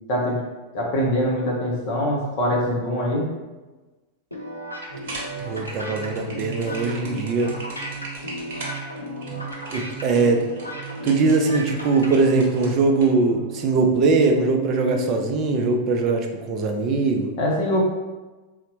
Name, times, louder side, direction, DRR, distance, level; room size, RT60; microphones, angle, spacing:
voice 1, 0.1-0.4 0.7-3.3 17.4-17.9, equal, 45° left, -2 dB, 0.8 m, -23 dB
sound 1, 4.3-12.2, equal, 85° left, 0.5 m, -35 dB
sound 2, 4.9-13.1, right 2 dB, 55° right, 0.8 m, -39 dB
sound 3, 4.9-15.8, right 7 dB, 85° right, 0.8 m, -37 dB
voice 2, 5.4-7.5 9.3-9.4 9.7-10.4 11.0-17.3, right 3 dB, 35° right, 3 dB, 0.4 m, -21 dB
4.0 x 2.1 x 2.7 m, 1.2 s
figure-of-eight pair, 90°, 0 cm